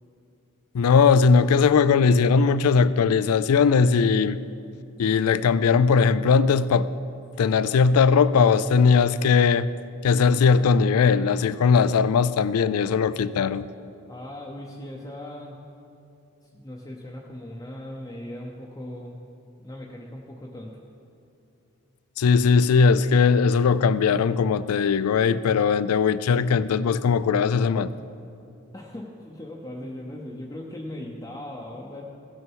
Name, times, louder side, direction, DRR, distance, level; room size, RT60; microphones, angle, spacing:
voice 1, 0.7-4.4 5.0-6.9 7.4-9.7 10.0-13.7 22.2-27.9, left 5 dB, 85° left, 0.4 m, -19 dB
voice 2, 14.1-15.6 16.5-19.2 19.6-20.8 28.7-32.0, left 1 dB, 15° left, 0.7 m, -38 dB
16.5 x 6.3 x 4.6 m
head